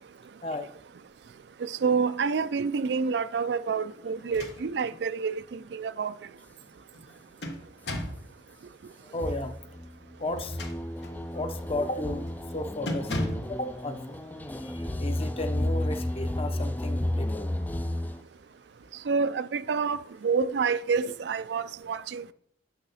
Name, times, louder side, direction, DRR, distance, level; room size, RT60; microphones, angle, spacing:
voice 1, 1.6-6.1 19.1-20.0 20.2-22.2, right 5 dB, 70° right, 0.4 m, -28 dB
sound 1, 4.2-4.9 5.4-5.5 6.9-8.3 10.3-11.2 11.7-11.9 12.3-12.5 12.9-13.6, left 1 dB, 75° left, 1.3 m, -35 dB
voice 2, 9.1-9.5 10.2-10.6 11.3-12.3 12.5-13.1 13.5-14.2 14.6-17.4 20.4-20.5, left 1 dB, 35° left, 0.8 m, -34 dB
sound 2, 9.2-18.2, left 1 dB, 10° left, 0.3 m, -32 dB
11.0 x 5.7 x 4.1 m
head